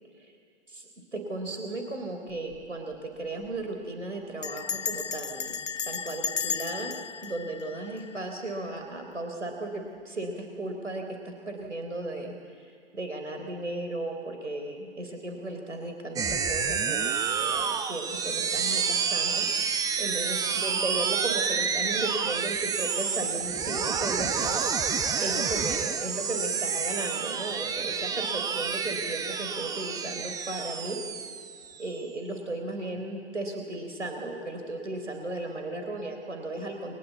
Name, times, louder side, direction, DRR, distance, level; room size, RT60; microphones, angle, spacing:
voice 1, 0.7-5.6 5.8-6.9 7.2-17.1 17.3-19.5 20.0-24.6 24.9-31.0 31.8-37.0, right 2 dB, 90° right, 3 dB, 3.9 m, -35 dB
Bell, 2.3-2.7 2.9-3.0 3.3-3.6 4.4-8.5, left 6 dB, 90° left, 0.6 m, -34 dB
sound 1, 16.2-32.0, right 6 dB, 10° right, 0.8 m, -29 dB
30.0 x 24.0 x 8.3 m, 2.3 s
figure-of-eight pair, 125°, 35 cm